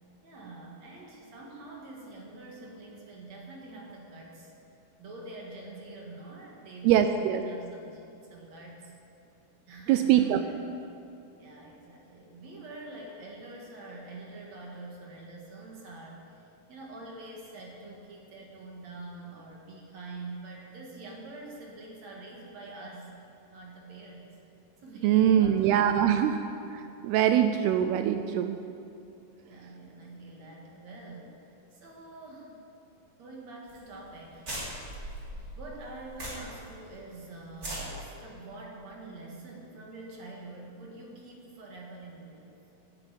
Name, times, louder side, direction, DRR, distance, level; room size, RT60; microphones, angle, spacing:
voice 1, 0.2-4.5 5.0-8.9 9.7-10.5 11.4-23.1 23.5-24.4 24.8-25.6 27.2-27.4 29.3-32.6 33.2-34.5 34.9-35.3 35.6-42.6, right 2 dB, 50° right, -2 dB, 2.4 m, -45 dB
voice 2, 6.8-7.4 9.9-10.4 25.0-26.4 26.7-28.6, right 10 dB, 80° right, 8 dB, 2.4 m, -23 dB
sound 1, 33.7-33.8 34.1-34.2 34.4-36.7 37.0-37.1 37.5-37.8, right 1 dB, 25° right, 3.2 m, -38 dB
11.0 x 9.9 x 8.9 m, 2.7 s
omnidirectional pair, 4.8 m